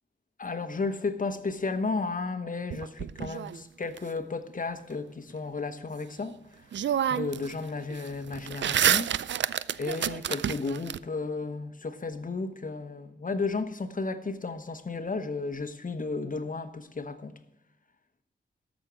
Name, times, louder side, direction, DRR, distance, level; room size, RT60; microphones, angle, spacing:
voice 1, 0.4-6.4 7.1-9.1 9.5-17.3, left 3 dB, 45° left, 1.1 m, -33 dB
sound 1, 2.7-4.0 6.2-6.3 6.7-7.5 7.8-11.0, right 9 dB, 75° right, 0.4 m, -28 dB
13.0 x 6.3 x 6.3 m
cardioid pair, 55°, 19 cm